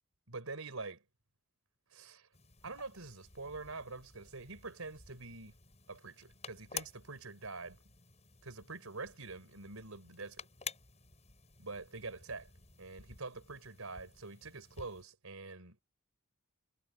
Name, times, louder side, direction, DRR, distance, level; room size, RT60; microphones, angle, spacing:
voice 1, 0.3-1.0 1.9-2.3 2.6-5.5 5.9-7.8 8.4-10.5 11.6-12.5 12.8-15.8, right 3 dB, 80° right, 4.2 m, -45 dB
sound 1, 2.3-15.0, left 6 dB, 30° left, 6.9 m, -52 dB
head